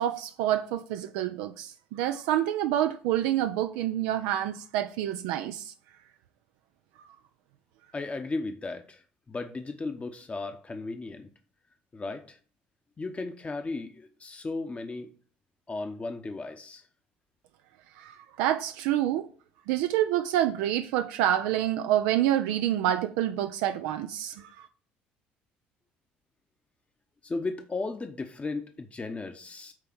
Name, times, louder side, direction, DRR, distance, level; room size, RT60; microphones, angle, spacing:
voice 1, 0.0-5.7 18.0-19.3 19.7-24.7, right 12 dB, 75° right, 0.4 m, -27 dB
voice 2, 7.9-9.0 9.3-11.3 11.9-12.4 13.0-15.1 15.7-16.8 27.2-29.7, left 3 dB, 25° left, 0.9 m, -35 dB
9.0 x 3.3 x 6.0 m
hypercardioid pair, 65°, 5 cm